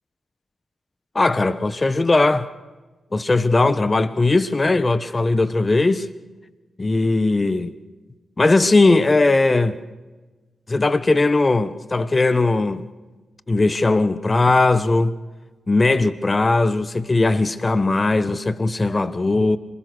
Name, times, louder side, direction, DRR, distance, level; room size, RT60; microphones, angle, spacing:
voice 1, 1.1-2.5 3.1-6.1 6.8-7.7 8.4-9.8 10.7-12.8 13.5-15.1 15.7-19.6, left 2 dB, 35° left, 1.2 m, -18 dB
26.5 x 21.5 x 6.3 m
supercardioid pair, 45°, 0 cm